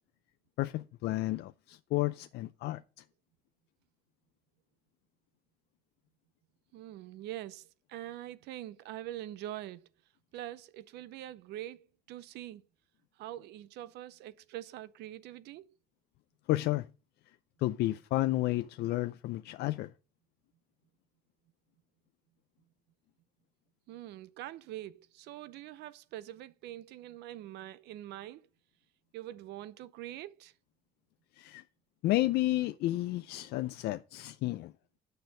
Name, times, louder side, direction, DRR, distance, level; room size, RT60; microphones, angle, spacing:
voice 1, 0.6-2.8 16.5-16.9 17.6-19.9 31.4-31.6 32.0-34.7, left 17 dB, 75° left, 0.5 m, -31 dB
voice 2, 6.7-9.9 10.3-12.6 13.2-15.7 23.9-28.5 29.1-30.5, right 13 dB, 80° right, 0.7 m, -44 dB
8.1 x 6.6 x 5.3 m
cardioid pair, 110°, 17 cm